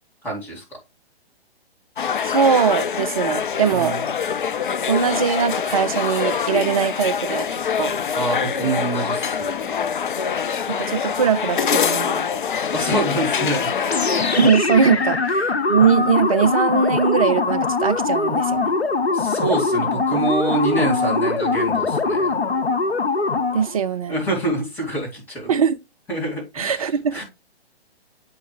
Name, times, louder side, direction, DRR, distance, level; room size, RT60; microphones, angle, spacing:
voice 1, 0.2-0.6 3.7-4.0 8.1-9.5 12.7-13.7 19.1-22.3 24.1-25.5 26.1-27.2, right 2 dB, 5° left, 2.6 m, -25 dB
sound 1, 2.0-14.5, left 7 dB, 50° left, 0.5 m, -24 dB
voice 2, 2.2-4.0 4.9-7.9 10.7-12.3 14.3-18.7 23.5-24.1 25.5-25.8 26.6-27.2, right 6 dB, 35° right, 0.6 m, -21 dB
sound 2, 13.9-23.7, left 4 dB, 80° left, 1.0 m, -22 dB
8.7 x 5.4 x 3.3 m
figure-of-eight pair, 130°, 32 cm